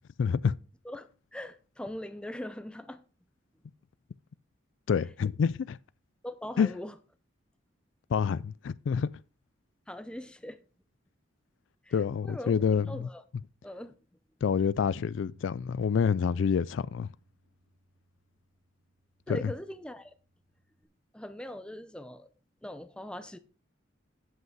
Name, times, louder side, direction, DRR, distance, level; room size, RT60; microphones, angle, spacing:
voice 1, 0.2-0.6 4.9-5.8 6.6-6.7 8.1-9.1 11.9-13.1 14.4-17.1 19.3-19.5, left 6 dB, 70° left, 0.3 m, -27 dB
voice 2, 0.8-3.0 6.2-6.9 9.9-10.6 11.8-11.9 12.2-12.5 12.9-13.2 13.6-14.0 19.3-20.1 21.1-22.3 22.6-23.4, left 1 dB, 5° left, 0.6 m, -41 dB
Bass guitar, 14.6-20.8, equal, 85° right, 1.4 m, -60 dB
8.0 x 8.0 x 4.7 m
head